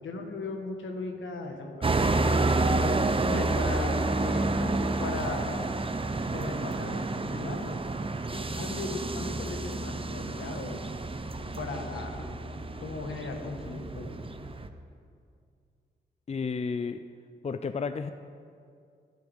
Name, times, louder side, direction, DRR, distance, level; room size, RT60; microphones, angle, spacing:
voice 1, 0.0-1.9 2.2-2.5 3.2-5.8 6.3-7.8 8.3-10.8 11.5-12.3 12.8-14.1, left 3 dB, 80° left, 3 dB, 1.5 m, -37 dB
sound 1, 1.8-14.7, right 2 dB, 25° right, 0.7 m, -29 dB
voice 2, 16.3-17.0 17.4-18.1, left 5 dB, 35° left, 10 dB, 0.5 m, -31 dB
19.0 x 9.4 x 3.6 m, 2.3 s
cardioid pair, 60°, 20 cm